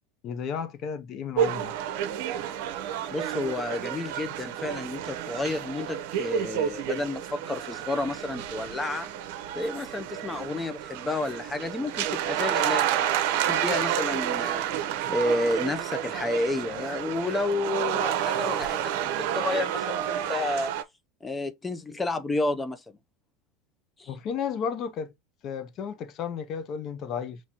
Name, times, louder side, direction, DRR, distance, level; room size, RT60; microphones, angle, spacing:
voice 1, 0.2-1.7 3.7-3.8 24.1-25.1 25.4-27.4, left 7 dB, 45° left, 0.8 m, -33 dB
sound 1, 1.4-20.8, right 10 dB, 70° right, 0.7 m, -30 dB
voice 2, 3.1-9.1 9.6-13.1 13.5-14.7 15.1-20.7 21.2-22.8 24.0-24.1, left 2 dB, 15° left, 0.5 m, -31 dB
5.9 x 3.1 x 2.9 m
supercardioid pair, 120°, 0 cm